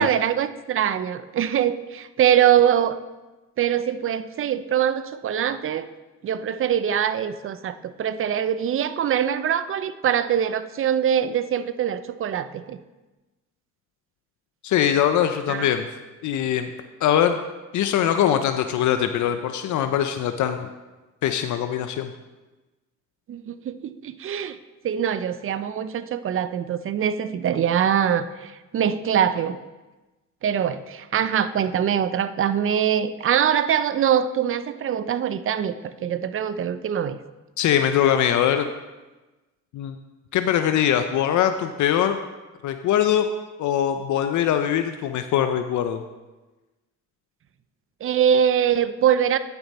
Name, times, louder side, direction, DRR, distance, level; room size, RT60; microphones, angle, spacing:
voice 1, 0.0-3.0 3.6-5.9 6.2-12.8 15.5-15.7 23.3-24.6 24.8-29.6 30.4-37.2 48.0-49.4, right 9 dB, 45° right, 13 dB, 0.5 m, -23 dB
voice 2, 14.6-15.9 16.2-16.7 17.0-17.4 17.7-20.7 21.2-22.1 37.6-38.7 39.7-40.0 40.3-42.2 42.6-43.2 43.6-46.0, left 10 dB, 75° left, 8 dB, 0.6 m, -22 dB
9.5 x 6.9 x 4.2 m, 1.2 s
cardioid pair, 90°, 30 cm